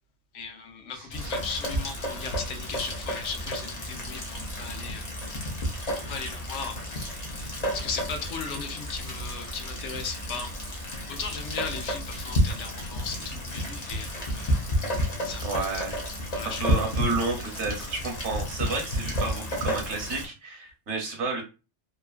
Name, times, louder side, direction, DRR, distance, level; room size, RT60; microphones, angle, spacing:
voice 1, 0.3-5.1 5.9-10.5 11.1-14.6 15.2-15.6 16.3-16.8, left 5 dB, 85° left, 1.0 m, -37 dB
voice 2, 0.9-1.3 15.4-16.0 16.4-21.4, right 3 dB, 75° right, 1.2 m, -31 dB
Rain, 1.1-20.3, equal, 45° left, 0.6 m, -31 dB
2.9 x 2.3 x 2.4 m
omnidirectional pair, 1.2 m